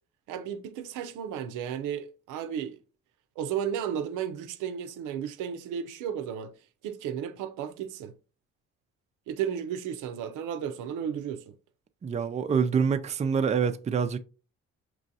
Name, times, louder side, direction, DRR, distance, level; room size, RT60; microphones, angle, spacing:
voice 1, 0.3-2.8 3.4-6.5 6.8-8.1 9.3-11.6, right 8 dB, 90° right, 0.5 m, -34 dB
voice 2, 12.0-14.2, right 6 dB, 25° right, 0.4 m, -26 dB
5.1 x 3.0 x 2.7 m
cardioid pair, 90°, 30 cm